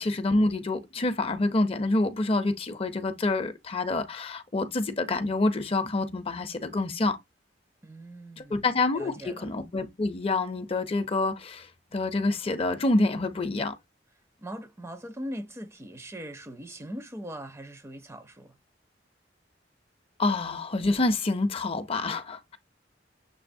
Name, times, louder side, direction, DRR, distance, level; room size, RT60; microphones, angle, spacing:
voice 1, 0.0-7.2 8.4-13.7 20.2-22.6, left 2 dB, 30° left, 0.5 m, -27 dB
voice 2, 7.8-8.6 8.9-9.5 14.4-18.6, equal, 15° right, 0.5 m, -40 dB
6.8 x 2.7 x 2.6 m
head